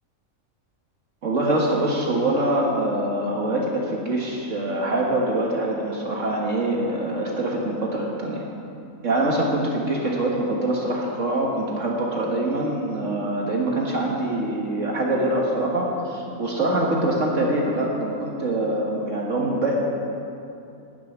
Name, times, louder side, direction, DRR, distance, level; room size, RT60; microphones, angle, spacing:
voice 1, 1.2-8.4 9.0-19.8, right 1 dB, 60° right, -2 dB, 1.9 m, -24 dB
13.5 x 7.0 x 9.0 m, 2.6 s
omnidirectional pair, 1.5 m